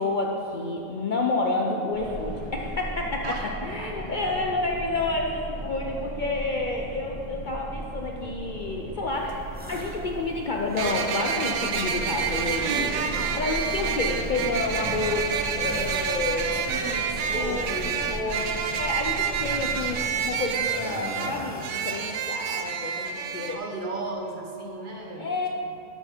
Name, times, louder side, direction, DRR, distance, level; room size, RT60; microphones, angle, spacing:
voice 1, 0.0-3.2 3.6-12.9 13.4-16.5 17.3-18.4 18.8-23.6 25.2-25.5, left 2 dB, 55° left, 0 dB, 0.6 m, -29 dB
sound 1, 1.9-20.4, right 1 dB, ahead, 1.7 m, -38 dB
voice 2, 3.8-4.1 5.5-5.6 12.6-13.6 16.5-18.7 23.5-25.5, right 2 dB, 45° right, 1 dB, 0.9 m, -35 dB
sound 2, 9.1-9.2 10.8-23.6, right 7 dB, 80° right, 1.0 m, -29 dB
sound 3, 9.5-10.1 10.5-11.3 11.9-13.0 13.4-14.5 14.8-15.3 15.6-16.2 16.6-18.5 19.2-20.2 20.5-22.0, equal, 15° right, 0.3 m, -41 dB
12.0 x 4.5 x 4.4 m, 3.0 s
omnidirectional pair, 1.3 m